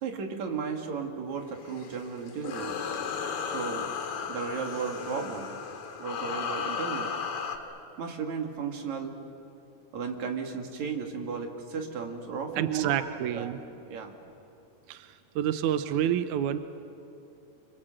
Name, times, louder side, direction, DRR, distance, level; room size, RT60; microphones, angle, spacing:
voice 1, 0.0-3.0 3.5-3.9 4.3-5.5 6.0-7.1 8.0-9.1 9.9-13.0 13.3-13.5 13.9-14.1, right 6 dB, 50° right, 2 dB, 3.2 m, -34 dB
sound 1, 1.6-7.6, left 6 dB, 55° left, 2.9 m, -35 dB
voice 2, 12.5-13.6 14.9-16.6, right 10 dB, 85° right, 9 dB, 1.7 m, -29 dB
28.5 x 25.5 x 7.8 m, 2.6 s
omnidirectional pair, 4.7 m